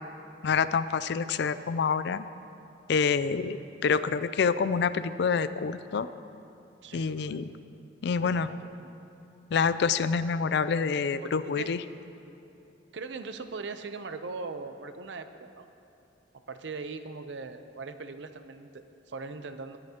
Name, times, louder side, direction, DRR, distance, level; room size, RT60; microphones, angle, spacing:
voice 1, 0.4-2.2 2.9-6.1 6.9-7.5 8.0-8.5 9.5-11.8, left 5 dB, 60° left, 13 dB, 0.4 m, -27 dB
voice 2, 6.8-7.4 8.2-8.9 11.2-11.7 12.9-15.6 16.5-19.8, right 4 dB, 65° right, 9 dB, 0.6 m, -40 dB
22.5 x 9.7 x 2.9 m, 2.7 s
head